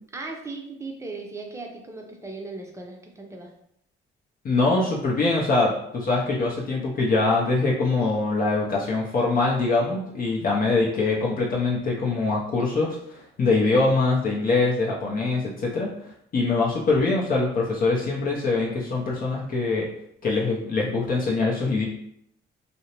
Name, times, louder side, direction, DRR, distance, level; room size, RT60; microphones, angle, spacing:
voice 1, 0.1-3.5, right 3 dB, 15° right, 1 dB, 0.5 m, -37 dB
voice 2, 4.4-15.9 16.3-19.9 20.2-21.8, left 3 dB, 45° left, -4 dB, 0.6 m, -23 dB
2.5 x 2.0 x 2.8 m, 0.74 s
cardioid pair, 90°, 20 cm